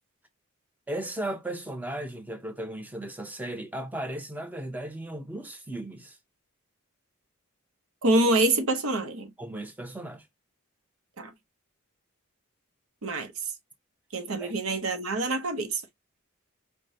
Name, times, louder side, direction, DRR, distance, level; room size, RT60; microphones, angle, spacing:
voice 1, 0.9-6.2 9.4-10.3 14.4-14.5, right 1 dB, 10° right, 0.6 m, -36 dB
voice 2, 8.0-9.3 11.2-11.3 13.0-13.5 14.1-15.8, right 2 dB, 75° right, 0.8 m, -26 dB
4.8 x 2.2 x 2.6 m
head